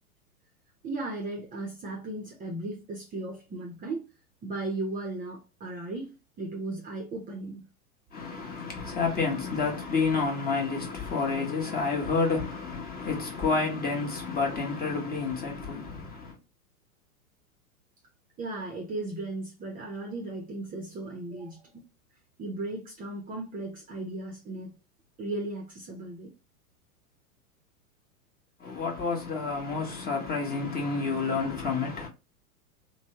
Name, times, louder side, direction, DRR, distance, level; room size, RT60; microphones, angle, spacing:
voice 1, 0.8-4.1 4.4-6.1 6.4-7.7 18.4-21.7 22.4-24.7 25.2-26.3, right 2 dB, 20° right, 0.6 m, -36 dB
voice 2, 8.1-16.4 28.6-32.1, left 4 dB, 20° left, 1.0 m, -29 dB
3.1 x 2.2 x 2.8 m
hypercardioid pair, 110°, 44 cm